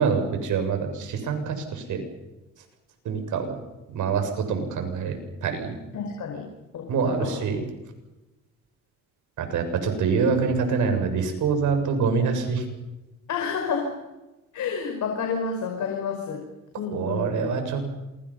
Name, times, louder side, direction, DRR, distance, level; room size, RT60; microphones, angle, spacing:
voice 1, 0.0-2.0 3.0-3.6 3.9-5.7 6.9-7.6 9.4-12.6 16.9-17.8, right 5 dB, 80° right, 6 dB, 6.8 m, -25 dB
voice 2, 5.9-7.4 13.3-13.9 14.5-16.4 16.8-17.5, left 5 dB, 75° left, 2 dB, 5.6 m, -30 dB
28.0 x 24.5 x 5.7 m, 1.1 s
cardioid pair, 90°, 30 cm